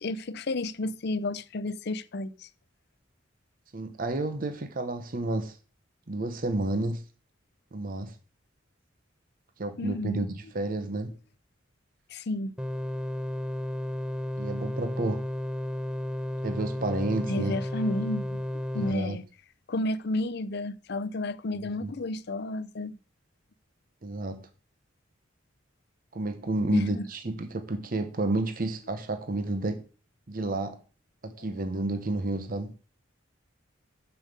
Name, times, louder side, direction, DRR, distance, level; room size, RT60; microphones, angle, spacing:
voice 1, 0.0-2.3 9.8-10.2 12.1-12.5 17.3-18.4 18.7-19.2 19.7-22.9 26.7-27.1, left 2 dB, 55° left, 0.6 m, -31 dB
voice 2, 3.7-5.6 6.1-7.0 7.7-8.2 9.6-11.1 14.4-15.3 16.4-17.6 18.7-19.2 21.8-21.9 24.0-24.5 26.1-29.8 30.3-30.8 31.2-32.7, right 2 dB, 45° right, 0.9 m, -30 dB
sound 1, 12.6-18.9, left 1 dB, 5° right, 0.5 m, -33 dB
7.3 x 6.8 x 6.7 m
head